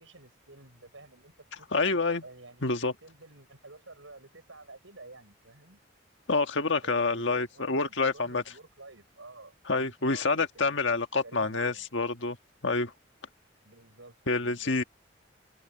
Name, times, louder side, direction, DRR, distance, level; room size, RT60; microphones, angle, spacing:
voice 1, 0.0-1.9 2.2-5.8 6.8-11.8 13.6-14.9, right 2 dB, 75° right, 6.8 m, -51 dB
voice 2, 1.7-2.2 2.6-2.9 6.3-8.4 9.7-12.4 12.6-12.9 14.3-14.8, left 3 dB, 70° left, 1.6 m, -27 dB
head